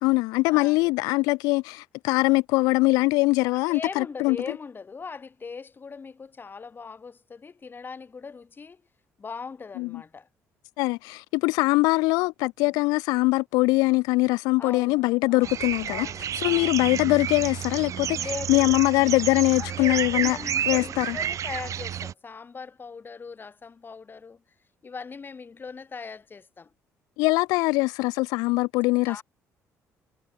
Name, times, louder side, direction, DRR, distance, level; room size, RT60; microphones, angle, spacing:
voice 1, 0.0-4.4 9.8-9.9 10.8-16.1 16.4-18.2 18.5-20.4 20.7-21.2 27.2-29.2, left 23 dB, 90° left, 0.4 m, -22 dB
voice 2, 3.4-8.8 9.2-10.3 12.6-12.7 14.6-15.6 15.8-16.8 18.1-18.7 19.6-20.0 20.3-24.4 24.8-26.7 29.1-29.2, left 5 dB, 35° left, 1.8 m, -40 dB
sound 1, 15.4-22.1, right 9 dB, 55° right, 1.0 m, -30 dB
supercardioid pair, 80°, 6 cm